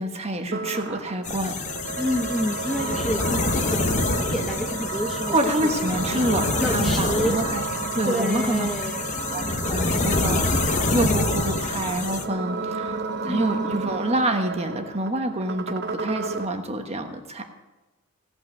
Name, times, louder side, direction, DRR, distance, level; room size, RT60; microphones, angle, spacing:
voice 1, 0.0-1.6 5.3-7.6 7.9-8.7 9.3-17.4, right 1 dB, 30° right, 5 dB, 1.2 m, -27 dB
sound 1, 0.5-16.5, right 4 dB, 50° right, 0.8 m, -32 dB
sound 2, 1.2-12.2, left 3 dB, 35° left, 0.9 m, -27 dB
voice 2, 2.0-5.7 6.6-7.4 8.1-9.1 13.2-13.8, equal, ahead, 1 dB, 0.7 m, -29 dB
17.0 x 5.9 x 7.8 m, 1.1 s
head